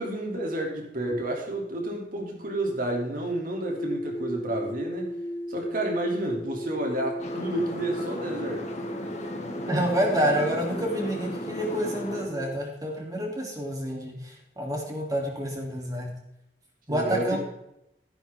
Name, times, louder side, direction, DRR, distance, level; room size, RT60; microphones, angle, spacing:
voice 1, 0.0-5.1 5.5-8.7 16.9-17.4, right 1 dB, 55° right, 1 dB, 3.0 m, -30 dB
sound 1, 3.6-12.6, equal, 20° left, 2.5 m, -36 dB
sound 2, 7.2-12.2, left 1 dB, 40° left, 1.9 m, -36 dB
voice 2, 9.7-16.1 16.9-17.4, equal, 20° right, -1 dB, 3.1 m, -28 dB
13.5 x 10.5 x 3.7 m, 0.82 s
head